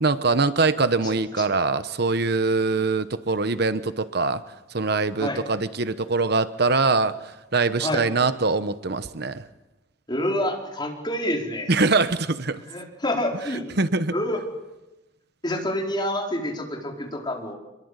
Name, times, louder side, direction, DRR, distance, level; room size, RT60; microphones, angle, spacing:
voice 1, 0.0-4.4 4.7-7.2 7.5-9.4 11.7-12.6 13.8-14.1, right 3 dB, 60° right, 12 dB, 1.0 m, -23 dB
voice 2, 1.0-1.4 5.2-5.4 7.8-8.0 10.1-11.8 12.7-13.6 14.1-14.4 15.4-17.6, left 1 dB, 25° left, 0 dB, 4.7 m, -28 dB
25.5 x 22.0 x 8.2 m, 1.0 s
head